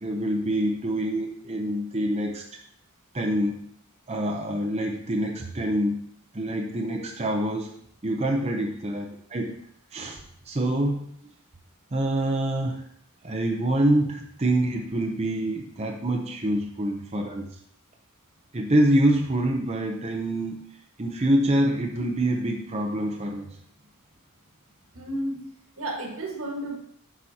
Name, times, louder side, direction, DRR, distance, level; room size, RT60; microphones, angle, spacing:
voice 1, 0.0-2.4 3.1-3.7 4.1-6.0 6.3-9.5 9.9-10.2 10.5-11.1 11.9-12.9 13.2-17.5 18.5-20.6 21.0-23.5, right 1 dB, 30° right, 1 dB, 0.6 m, -26 dB
voice 2, 24.9-25.4 25.8-26.8, right 1 dB, 65° right, -1 dB, 1.7 m, -32 dB
9.6 x 6.1 x 2.8 m, 0.65 s
head